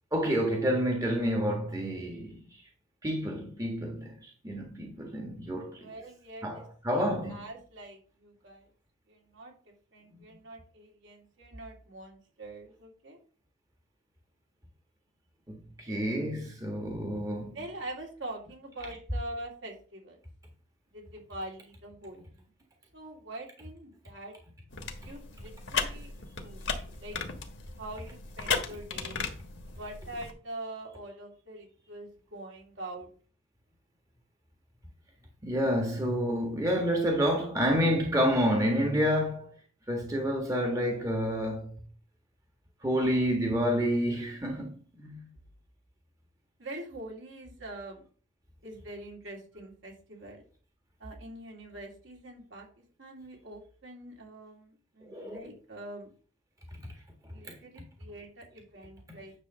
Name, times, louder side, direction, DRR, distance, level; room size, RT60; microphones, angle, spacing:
voice 1, 0.1-2.6 3.0-5.9 6.4-7.5 10.1-10.2 15.5-17.6 35.4-39.5 39.9-41.7 42.8-45.3 55.0-55.5 56.8-56.9 57.4-57.5, equal, 15° right, 1.3 m, -29 dB
voice 2, 5.8-8.7 9.1-9.6 9.9-13.2 17.5-20.2 20.9-22.5 22.9-24.4 25.0-26.6 27.0-27.2 27.8-29.2 29.7-33.1 46.6-48.1 48.6-50.4 51.0-56.1 57.3-59.3, right 1 dB, 65° right, 2.7 m, -44 dB
sound 1, 24.7-30.3, left 5 dB, 60° left, 1.4 m, -36 dB
9.6 x 3.2 x 6.6 m
head